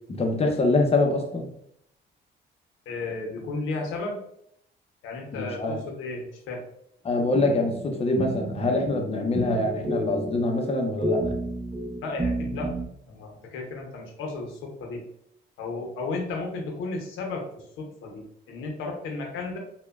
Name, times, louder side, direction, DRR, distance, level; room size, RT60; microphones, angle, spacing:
voice 1, 0.1-1.5 5.3-5.8 7.0-11.3, left 2 dB, 30° left, 2 dB, 0.6 m, -24 dB
voice 2, 2.9-4.2 5.0-6.6 12.0-12.7 13.1-15.0 15.6-19.6, left 3 dB, 85° left, 1 dB, 0.7 m, -34 dB
sound 1, 7.3-12.9, right 1 dB, 25° right, 0.5 m, -31 dB
2.9 x 2.2 x 2.3 m, 0.73 s
cardioid pair, 90°, 20 cm